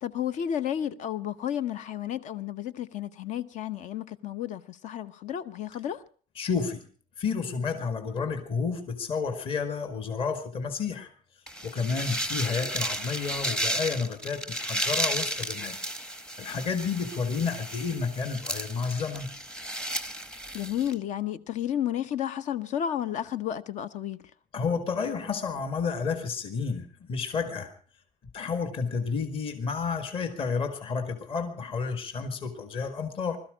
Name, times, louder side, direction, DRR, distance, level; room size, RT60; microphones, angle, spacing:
voice 1, 0.0-6.0 20.5-24.2, left 10 dB, 50° left, 0.9 m, -32 dB
voice 2, 6.4-6.8 7.2-11.1 11.6-15.8 16.4-19.3 24.5-27.7 28.3-33.4, left 5 dB, 35° left, 1.9 m, -31 dB
sound 1, 11.5-20.9, right 1 dB, 5° left, 0.9 m, -33 dB
21.0 x 13.0 x 5.0 m
cardioid pair, 165°, 16 cm